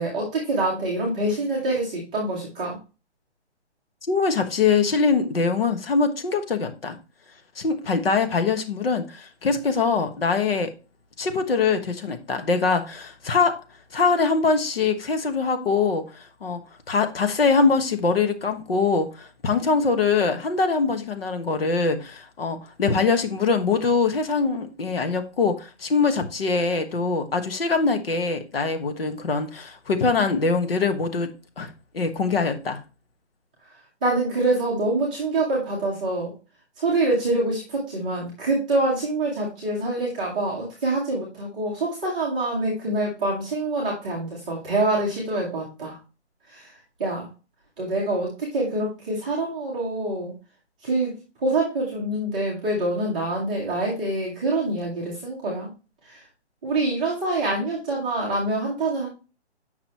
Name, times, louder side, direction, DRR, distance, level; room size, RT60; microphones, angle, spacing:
voice 1, 0.0-2.8 34.0-36.3 36.8-46.0 46.5-46.7 47.0-47.3 47.8-50.3 50.8-51.1 51.4-55.7 56.1-56.2 56.6-59.1, right 2 dB, 5° right, 0.8 m, -25 dB
voice 2, 4.1-7.0 7.6-10.7 11.2-13.6 13.9-16.6 16.9-31.3 31.6-32.8, left 4 dB, 55° left, 1.3 m, -23 dB
7.5 x 6.0 x 2.9 m
hypercardioid pair, 170°, 35 cm